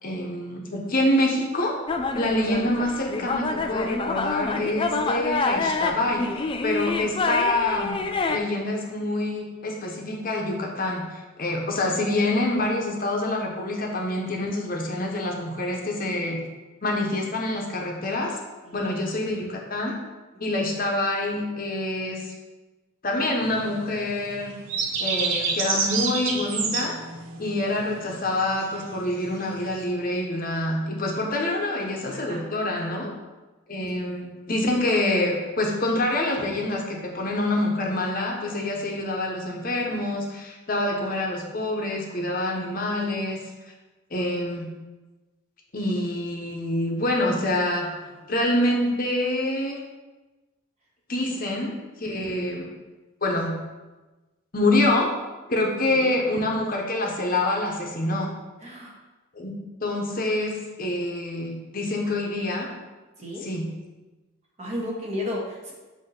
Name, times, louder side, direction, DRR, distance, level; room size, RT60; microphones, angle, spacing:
voice 1, 0.0-1.8 2.1-8.0 8.3-16.4 16.8-18.4 18.7-19.9 20.4-22.3 23.0-24.5 25.0-26.9 27.4-33.1 33.7-43.4 44.1-44.7 45.7-47.9 48.3-49.8 51.1-52.7 53.2-53.5 54.5-55.1 55.5-58.3 59.3-59.5 59.8-62.7 63.4-63.6, left 1 dB, 40° left, 0 dB, 1.0 m, -26 dB
sound 1, 1.9-8.4, left 3 dB, 25° left, 0.3 m, -27 dB
sound 2, 23.4-29.8, right 4 dB, 65° right, 0.8 m, -29 dB
voice 2, 32.1-32.9 33.9-34.1 48.1-48.2 52.0-52.3 55.9-56.1 58.6-59.0 62.0-62.1 63.2-63.5 64.6-65.7, left 1 dB, 30° right, -4 dB, 1.5 m, -35 dB
7.9 x 2.9 x 5.8 m, 1.2 s
head